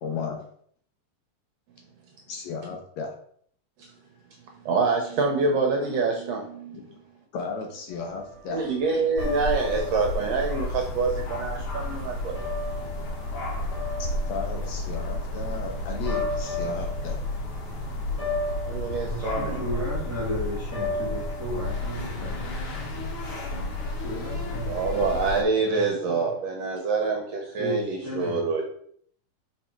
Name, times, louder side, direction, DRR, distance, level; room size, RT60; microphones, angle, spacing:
voice 1, 0.0-0.4 2.3-3.1 6.7-6.9 7.3-8.7 14.0-17.2, left 5 dB, 70° left, 2 dB, 1.8 m, -34 dB
voice 2, 4.6-6.9 8.5-12.4 18.7-19.8 24.7-28.6, right 4 dB, 70° right, 1 dB, 1.7 m, -26 dB
sound 1, 7.9-21.9, left 2 dB, 35° left, 1.8 m, -35 dB
sound 2, 9.2-25.4, left 2 dB, 55° left, 1.8 m, -32 dB
voice 3, 19.0-22.3 24.0-25.0 25.6-26.3 27.6-28.5, equal, 10° right, -6 dB, 1.0 m, -34 dB
5.7 x 4.1 x 4.4 m, 0.62 s
omnidirectional pair, 3.6 m